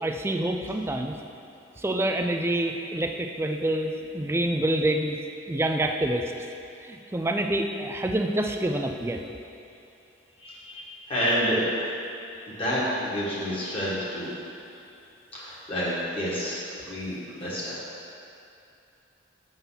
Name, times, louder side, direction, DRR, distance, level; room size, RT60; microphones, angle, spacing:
voice 1, 0.0-1.1 1.8-5.2 5.5-6.3 6.8-9.2, right 1 dB, 15° right, 4 dB, 0.3 m, -27 dB
voice 2, 10.4-11.7 12.3-14.3 15.3-17.8, equal, 30° left, -8 dB, 1.6 m, -29 dB
7.0 x 4.0 x 5.6 m, 2.7 s
head